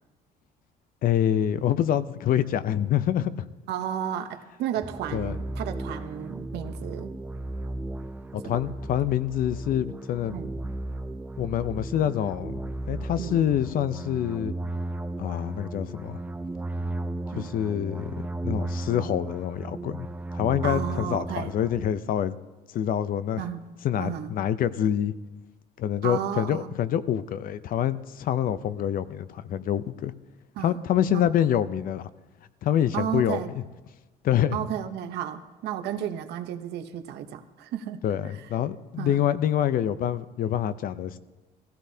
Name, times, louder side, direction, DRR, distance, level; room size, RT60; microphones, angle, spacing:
voice 1, 1.0-3.5 5.1-5.4 8.3-10.4 11.4-14.5 15.2-16.2 17.3-18.1 18.4-20.1 20.3-22.3 22.7-23.4 23.8-25.1 25.8-30.1 30.6-32.1 32.6-33.4 34.2-34.6 38.0-41.2, left 10 dB, 55° left, 14 dB, 0.6 m, -26 dB
voice 2, 3.7-7.1 8.5-8.6 10.3-10.5 13.2-13.4 17.3-17.5 20.6-21.5 23.4-23.7 24.0-24.3 26.0-26.8 30.5-30.8 31.1-31.3 32.9-33.5 34.5-38.5 39.0-39.2, right 10 dB, 80° right, 8 dB, 0.9 m, -33 dB
sound 1, 4.8-21.9, right 2 dB, 10° right, 0.4 m, -35 dB
17.5 x 15.5 x 2.8 m, 1.1 s
cardioid pair, 110°, 17 cm